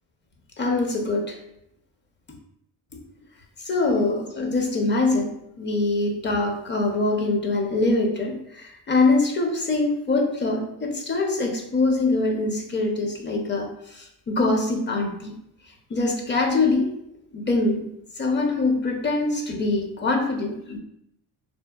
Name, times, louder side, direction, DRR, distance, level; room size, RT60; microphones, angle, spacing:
voice 1, 0.6-1.4 3.7-5.3 5.6-8.4 8.9-13.7 14.3-15.3 15.9-16.9 17.3-17.8 18.2-20.8, left 3 dB, 25° left, 2 dB, 0.5 m, -23 dB
2.7 x 2.1 x 2.3 m, 0.78 s
cardioid pair, 75°, 43 cm